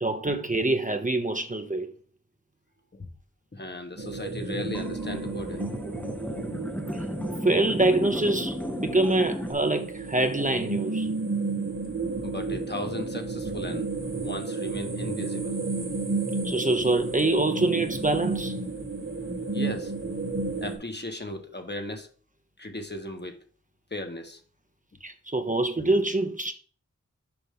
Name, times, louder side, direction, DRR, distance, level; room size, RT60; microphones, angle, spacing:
voice 1, 0.0-1.9 7.4-11.1 16.4-18.6 25.0-26.5, right 2 dB, 25° right, 0.8 m, -25 dB
voice 2, 3.5-5.7 12.2-13.9 14.2-15.6 19.5-19.9 20.6-22.1 22.6-23.4 23.9-24.4, left 2 dB, 35° left, 1.2 m, -36 dB
sound 1, 4.0-20.8, right 3 dB, 45° right, 1.7 m, -32 dB
sound 2, 4.7-9.5, equal, 5° left, 0.8 m, -35 dB
7.0 x 5.1 x 3.7 m
cardioid pair, 40°, 30 cm